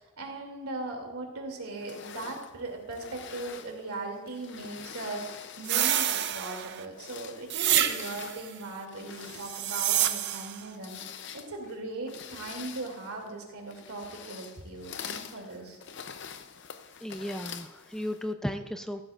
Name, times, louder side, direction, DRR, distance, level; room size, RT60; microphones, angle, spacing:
voice 1, 0.0-15.8, right 2 dB, 85° right, 1 dB, 2.7 m, -39 dB
sound 1, 1.7-6.3 6.8-18.3, left 7 dB, 50° left, 0.6 m, -45 dB
sound 2, 5.7-6.9 7.5-8.4 9.3-10.6, right 11 dB, 50° right, 0.6 m, -28 dB
voice 2, 17.0-19.0, equal, ahead, 8 dB, 0.3 m, -35 dB
14.5 x 13.0 x 2.5 m, 1.2 s
head